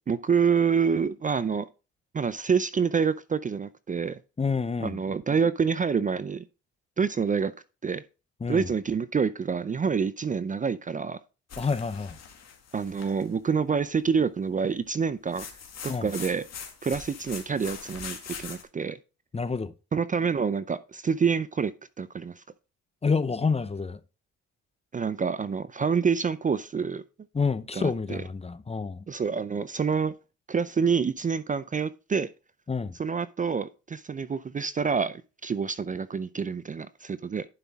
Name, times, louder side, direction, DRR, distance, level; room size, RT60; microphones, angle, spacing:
voice 1, 0.1-1.7 2.1-4.2 4.8-6.5 7.0-7.5 7.8-8.0 8.5-11.2 12.7-15.4 15.8-16.4 16.8-19.0 19.9-21.7 22.0-22.4 24.9-27.0 27.7-28.2 29.1-30.1 30.5-32.3 33.0-37.5, right 6 dB, 25° right, 0.5 m, -27 dB
voice 2, 4.4-5.0 8.4-8.7 11.6-12.2 15.9-16.1 19.3-19.7 23.0-24.0 27.3-29.0 32.7-32.9, left 4 dB, 20° left, 0.6 m, -28 dB
sound 1, 11.5-13.3 15.3-18.6, left 7 dB, 60° left, 2.1 m, -42 dB
11.0 x 5.7 x 3.6 m
cardioid pair, 90°, 30 cm